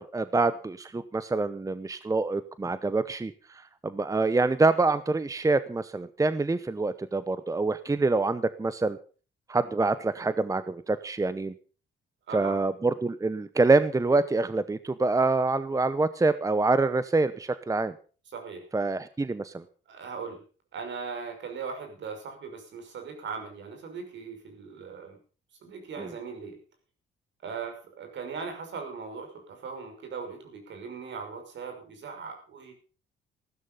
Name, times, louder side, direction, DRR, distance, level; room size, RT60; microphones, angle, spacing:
voice 1, 0.0-3.3 3.8-9.0 9.5-11.5 12.3-17.9 18.7-19.6 26.0-26.1, right 3 dB, 15° right, 14 dB, 0.8 m, -26 dB
voice 2, 12.3-12.6 18.3-18.7 19.9-20.4 20.7-25.2 25.6-26.6 27.4-32.7, right 5 dB, 65° right, 4 dB, 6.0 m, -39 dB
15.0 x 12.5 x 5.5 m, 0.38 s
cardioid pair, 90°, 20 cm